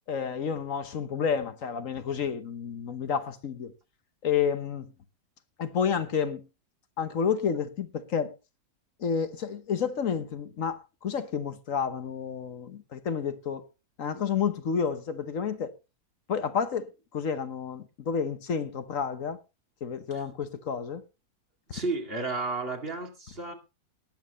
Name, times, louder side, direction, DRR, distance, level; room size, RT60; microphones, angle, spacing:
voice 1, 0.1-3.7 4.2-4.9 5.6-6.5 7.0-8.3 9.0-13.7 14.0-15.7 16.3-19.4 19.8-21.0, left 7 dB, 55° left, 1.4 m, -30 dB
voice 2, 21.7-23.5, right 3 dB, 35° right, 2.5 m, -32 dB
19.0 x 9.1 x 3.0 m
omnidirectional pair, 1.7 m